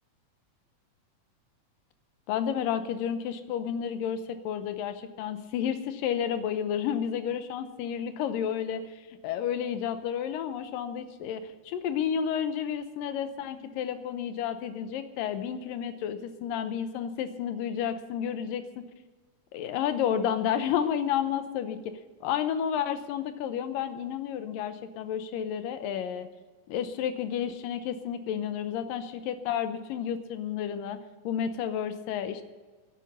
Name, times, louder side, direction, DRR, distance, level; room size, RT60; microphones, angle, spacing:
voice 1, 2.3-18.9 19.5-21.9 22.2-26.3 26.7-31.0 31.2-32.4, left 8 dB, 85° left, 10 dB, 2.6 m, -31 dB
10.5 x 9.4 x 9.9 m, 1.3 s
omnidirectional pair, 3.9 m